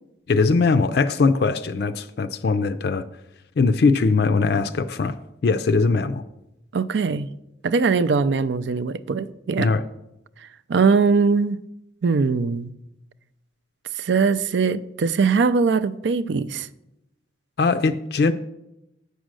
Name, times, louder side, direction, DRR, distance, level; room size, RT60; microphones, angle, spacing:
voice 1, 0.3-3.0 3.6-5.2 5.4-6.2 9.6-9.8 17.6-18.3, left 4 dB, 55° left, 0.4 m, -20 dB
voice 2, 6.7-7.3 7.6-9.7 10.7-11.6 12.0-12.7 14.0-16.7, right 5 dB, 70° right, 0.4 m, -21 dB
8.1 x 6.3 x 6.2 m
head